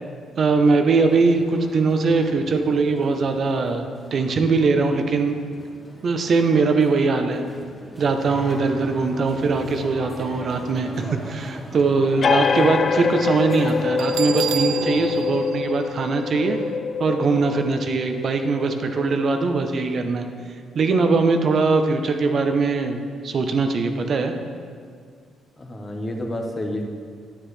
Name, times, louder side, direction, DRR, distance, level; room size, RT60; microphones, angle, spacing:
voice 1, 0.4-5.4 6.0-7.4 8.0-10.9 11.3-16.6 17.0-20.3 20.7-23.0 23.2-24.3, right 4 dB, 55° right, 6 dB, 0.7 m, -21 dB
sound 1, 0.9-15.5, equal, 15° left, 2.2 m, -39 dB
sound 2, 12.2-19.4, left 5 dB, 45° left, 0.4 m, -25 dB
Bell, 14.0-16.7, right 10 dB, 90° right, 0.4 m, -31 dB
voice 2, 25.6-26.8, left 1 dB, 30° left, 2 dB, 1.3 m, -29 dB
9.3 x 9.0 x 3.3 m, 2.1 s
cardioid pair, 90°, 0 cm